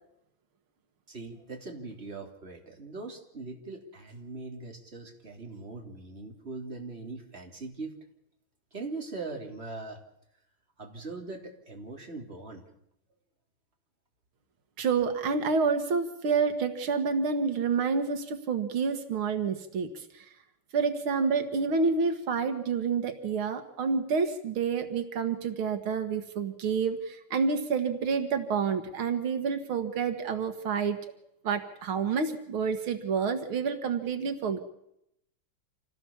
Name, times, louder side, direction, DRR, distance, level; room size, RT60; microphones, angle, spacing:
voice 1, 1.1-7.9 8.7-10.0 10.8-12.7, right 3 dB, 30° right, 2 dB, 3.6 m, -41 dB
voice 2, 14.8-20.3 20.7-31.0 31.4-34.6, right 5 dB, 90° right, 8 dB, 2.5 m, -28 dB
27.0 x 17.5 x 7.2 m, 0.78 s
omnidirectional pair, 2.2 m